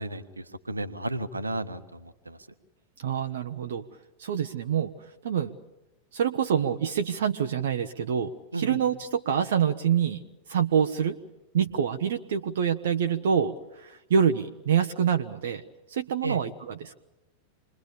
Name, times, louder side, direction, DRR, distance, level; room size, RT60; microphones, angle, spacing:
voice 1, 0.0-2.4 8.5-8.8 16.2-16.4, right 2 dB, 80° right, 11 dB, 1.4 m, -33 dB
voice 2, 3.0-3.8 4.2-5.5 6.1-10.2 10.5-11.2 11.5-15.6 15.9-17.0, right 8 dB, 60° right, 7 dB, 0.9 m, -26 dB
27.5 x 22.0 x 8.7 m, 1.0 s
figure-of-eight pair, 90°, 0 cm